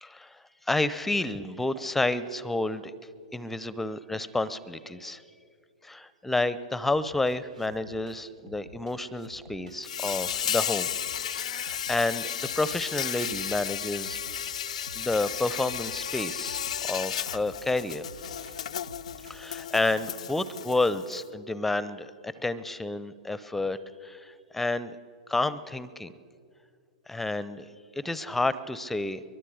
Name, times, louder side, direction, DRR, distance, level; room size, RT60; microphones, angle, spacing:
voice 1, 0.0-2.9 3.3-5.2 5.8-10.9 11.4-14.2 14.9-18.1 19.3-25.0 25.3-26.1 27.1-27.7 27.9-29.2, left 2 dB, 5° left, 17 dB, 0.8 m, -30 dB
sound 1, 6.9-20.1, right 2 dB, 75° right, 1.4 m, -51 dB
Insect, 9.8-21.2, left 9 dB, 65° left, 0.5 m, -34 dB
23.5 x 22.5 x 6.5 m, 2.2 s
figure-of-eight pair, 105°, 4 cm